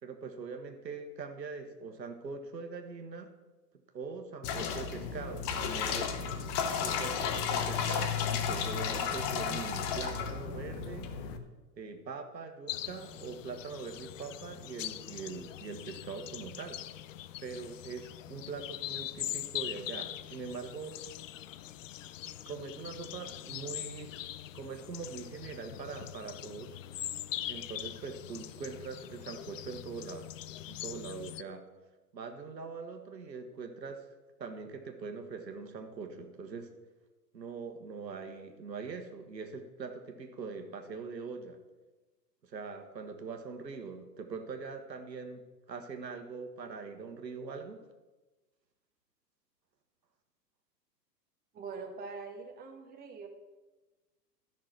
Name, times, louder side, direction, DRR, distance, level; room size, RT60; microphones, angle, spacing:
voice 1, 0.0-3.3 3.9-6.2 6.8-11.1 11.8-16.8 17.4-21.0 22.5-24.2 24.5-26.8 27.5-30.3 30.7-31.6 32.1-34.1 34.4-36.7 37.3-41.6 42.4-47.8, right 4 dB, 80° right, 5 dB, 1.4 m, -42 dB
sound 1, 4.4-11.4, left 7 dB, 30° left, 0.9 m, -33 dB
sound 2, 12.7-31.4, left 13 dB, 50° left, 0.5 m, -42 dB
voice 2, 51.5-53.3, right 4 dB, 20° right, 2 dB, 1.3 m, -43 dB
12.0 x 6.1 x 6.0 m, 1.2 s
figure-of-eight pair, 110°, 50 cm